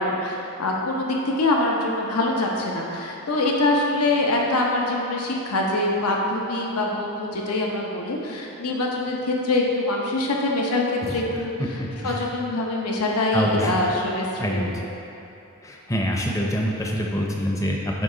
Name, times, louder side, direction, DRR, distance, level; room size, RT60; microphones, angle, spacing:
voice 1, 0.0-14.7, left 2 dB, 90° left, -1 dB, 0.8 m, -24 dB
voice 2, 11.0-11.4 11.8-12.3 13.3-13.7 14.4-14.7 15.6-18.0, equal, 15° left, -1 dB, 0.5 m, -26 dB
9.1 x 3.2 x 3.8 m, 3.0 s
head